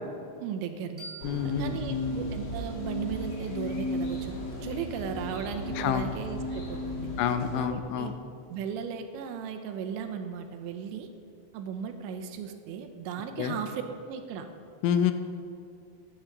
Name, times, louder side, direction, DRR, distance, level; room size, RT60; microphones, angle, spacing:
voice 1, 0.4-1.1 1.4-4.4 4.6-7.1 7.6-8.1 8.5-11.1 11.5-13.8 14.1-14.5, right 7 dB, 85° right, 7 dB, 3.0 m, -36 dB
sound 1, 1.0-3.8, right 2 dB, 10° right, 2.7 m, -50 dB
voice 2, 1.2-2.1 5.8-6.1 7.2-8.1 13.4-13.6 14.8-15.1, left 9 dB, 90° left, 9 dB, 3.2 m, -28 dB
sound 2, 1.2-7.7, left 1 dB, 45° left, 1.7 m, -35 dB
14.5 x 10.0 x 3.9 m, 2.5 s
omnidirectional pair, 5.4 m